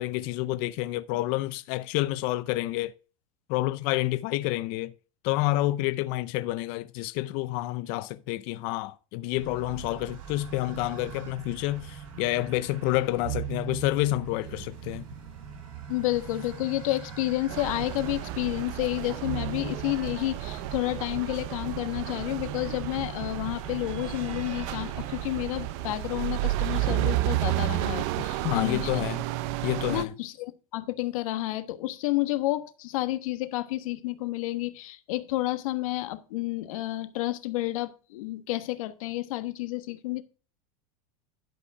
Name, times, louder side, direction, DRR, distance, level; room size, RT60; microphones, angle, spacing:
voice 1, 0.0-2.9 3.5-4.9 5.2-15.0 28.4-29.2 29.6-30.1, left 17 dB, 50° left, 0.5 m, -29 dB
sound 1, 9.3-27.3, right 7 dB, 85° right, 3.4 m, -41 dB
voice 2, 15.9-29.0 29.9-40.2, left 17 dB, 75° left, 1.3 m, -30 dB
sound 2, 17.5-30.0, right 16 dB, 55° right, 0.6 m, -32 dB
11.5 x 5.2 x 4.7 m
supercardioid pair, 145°, 18 cm